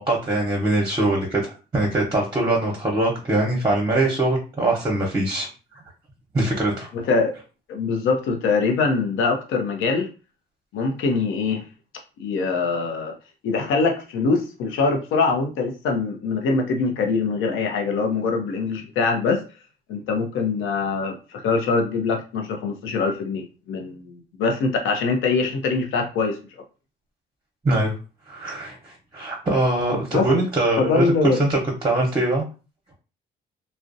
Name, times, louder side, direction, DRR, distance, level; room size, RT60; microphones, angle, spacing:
voice 1, 0.0-5.5 6.3-6.9 27.6-27.9 28.3-31.1 31.4-32.5, right 2 dB, 20° right, -2 dB, 0.8 m, -22 dB
voice 2, 6.9-7.3 7.7-10.1 10.7-11.6 12.2-13.2 13.4-19.4 19.9-21.1 21.4-26.4 30.1-30.4 30.8-31.4, left 4 dB, 90° left, 3 dB, 0.5 m, -23 dB
2.4 x 2.0 x 2.5 m, 0.33 s
cardioid pair, 90°, 20 cm